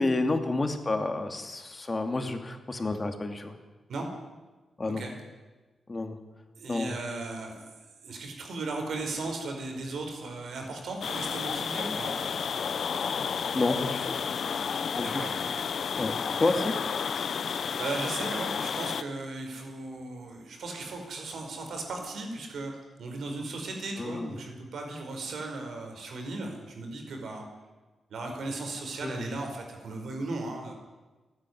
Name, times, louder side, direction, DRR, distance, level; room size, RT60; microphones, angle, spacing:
voice 1, 0.0-3.5 4.8-5.0 5.9-6.2 6.7-7.0 13.5-14.3 15.0-15.3 16.0-16.8 24.0-24.3 29.0-29.3, left 2 dB, 30° left, 6 dB, 2.6 m, -30 dB
voice 2, 6.6-7.8 8.0-12.2 15.0-15.4 17.4-27.5 28.1-30.7, right 3 dB, 75° right, 3 dB, 5.0 m, -36 dB
sound 1, 11.0-19.0, left 6 dB, 65° left, 0.9 m, -31 dB
29.0 x 9.8 x 9.6 m, 1.2 s
cardioid pair, 85°, 0 cm